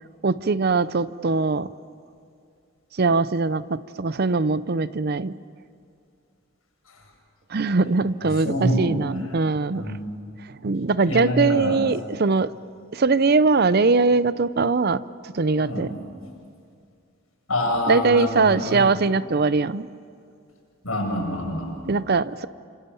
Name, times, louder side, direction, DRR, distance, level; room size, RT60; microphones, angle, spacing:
voice 1, 0.2-1.7 2.9-5.4 7.5-9.9 10.4-12.5 12.9-15.9 17.9-19.9 21.8-22.5, right 4 dB, 45° right, 16 dB, 0.6 m, -21 dB
voice 2, 8.4-8.9 9.7-10.0 11.0-11.8 15.6-15.9 17.5-18.9 20.8-21.7, equal, 75° left, 0 dB, 7.4 m, -26 dB
28.5 x 26.0 x 7.0 m, 2.3 s
head